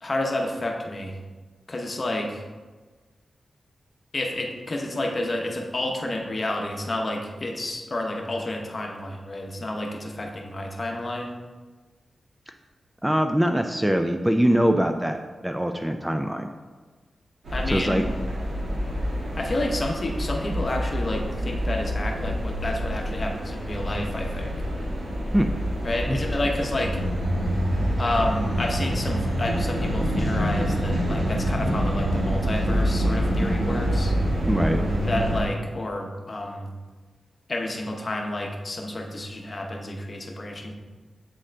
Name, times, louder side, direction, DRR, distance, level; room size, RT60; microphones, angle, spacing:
voice 1, 0.0-1.2 1.7-2.5 4.1-11.3 17.5-18.0 19.4-24.6 25.8-27.0 28.0-34.1 35.0-36.7 37.5-40.7, left 1 dB, 40° left, 1 dB, 0.8 m, -30 dB
voice 2, 13.0-15.2 15.4-16.5 17.7-18.0 25.3-25.5 26.1-26.2 34.5-34.8, equal, 10° right, 5 dB, 0.3 m, -22 dB
sound 1, 17.4-35.4, equal, 80° right, 1.4 m, -26 dB
7.7 x 3.7 x 3.3 m, 1.3 s
wide cardioid pair, 85°, 0 cm